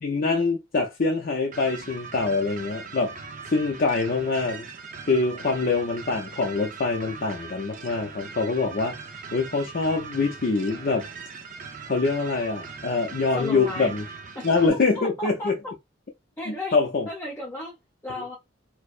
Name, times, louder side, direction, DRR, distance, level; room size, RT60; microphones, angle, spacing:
voice 1, 0.0-3.1 3.5-4.7 5.1-9.0 9.3-11.1 11.8-14.0 14.4-15.6 16.5-17.1, left 3 dB, 50° left, 0.5 m, -24 dB
sound 1, 1.5-14.7, right 5 dB, 45° right, 0.6 m, -40 dB
voice 2, 13.3-14.0 14.4-14.5 14.9-15.5 16.4-16.8 17.1-17.8 18.0-18.4, left 1 dB, 10° left, 0.7 m, -34 dB
4.6 x 2.0 x 2.4 m
head